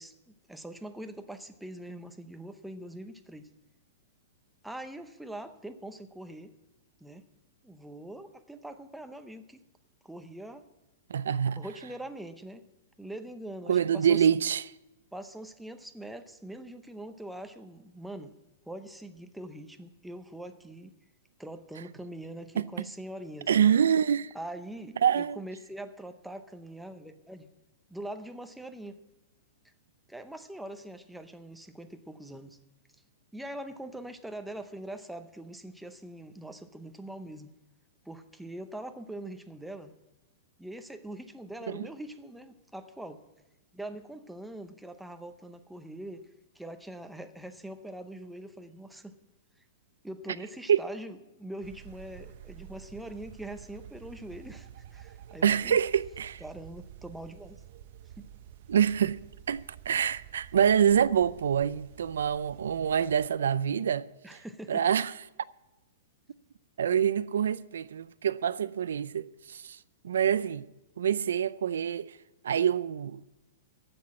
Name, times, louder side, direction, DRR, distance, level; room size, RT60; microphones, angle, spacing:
voice 1, 0.0-3.5 4.6-6.5 7.0-7.2 7.6-9.6 10.0-10.6 11.6-12.6 13.0-14.2 15.1-18.3 18.7-20.9 21.4-23.5 24.3-27.5 27.9-29.0 30.1-32.6 33.3-37.5 38.0-39.9 40.6-43.2 43.7-46.3 46.5-49.2 50.0-55.8 56.4-57.6 58.2-58.3 64.2-64.8, right 1 dB, ahead, 0.7 m, -43 dB
voice 2, 11.1-11.6 13.7-14.6 22.6-22.9 23.5-24.3 25.0-25.4 41.7-41.9 50.7-50.8 55.4-56.4 58.7-59.2 59.5-64.1 64.7-65.1 66.8-69.8 70.0-70.7 71.0-72.2 72.4-73.2, right 8 dB, 90° right, 0.4 m, -26 dB
sound 1, 51.6-63.3, right 11 dB, 50° right, 0.7 m, -50 dB
14.5 x 6.1 x 8.6 m
hypercardioid pair, 160°, 0 cm